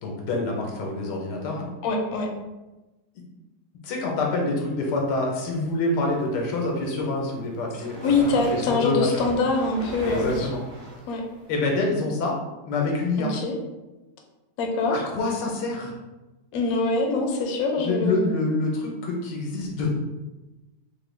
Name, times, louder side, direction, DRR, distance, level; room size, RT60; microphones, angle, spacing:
voice 1, 0.0-1.7 3.8-9.1 10.0-10.6 11.5-12.4 12.7-13.3 14.9-16.0 17.8-19.9, left 2 dB, 90° left, 0 dB, 1.3 m, -26 dB
voice 2, 1.8-2.3 8.0-10.5 11.1-11.2 13.2-13.6 14.6-15.0 16.5-18.3, left 3 dB, 70° left, 1 dB, 1.0 m, -24 dB
sound 1, 6.5-11.6, right 1 dB, 55° right, 1.3 m, -40 dB
3.6 x 2.2 x 3.2 m, 1.1 s
omnidirectional pair, 1.8 m